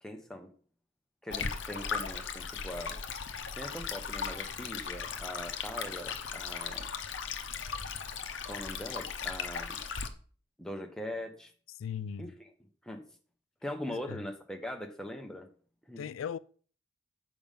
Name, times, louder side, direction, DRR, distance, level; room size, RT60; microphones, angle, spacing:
voice 1, 0.0-0.5 1.2-3.0 3.6-6.9 8.4-9.8 10.6-11.5 12.2-12.5 12.8-13.0 13.6-15.5 15.9-16.0, left 1 dB, 5° left, 1.0 m, -41 dB
Stream, 1.3-10.1, left 6 dB, 65° left, 0.8 m, -37 dB
voice 2, 11.8-12.3 13.9-14.2 16.0-16.4, left 7 dB, 80° left, 0.3 m, -38 dB
7.1 x 5.1 x 5.6 m
head